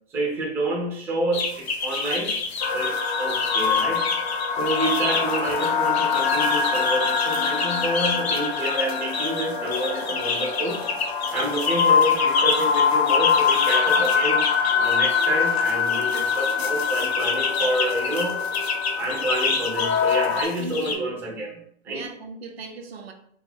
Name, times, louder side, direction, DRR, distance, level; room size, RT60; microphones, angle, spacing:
voice 1, 0.1-2.4 2.7-4.1 4.6-10.8 11.3-14.5 14.7-18.4 19.0-22.1, right 1 dB, 10° right, 0.4 m, -28 dB
sound 1, 1.3-21.0, left 4 dB, 75° left, 0.7 m, -29 dB
sound 2, 2.6-20.4, left 6 dB, 40° left, 0.6 m, -24 dB
voice 2, 20.6-21.1 21.9-23.1, right 4 dB, 75° right, 0.7 m, -37 dB
2.6 x 2.3 x 3.5 m
hypercardioid pair, 115°, 31 cm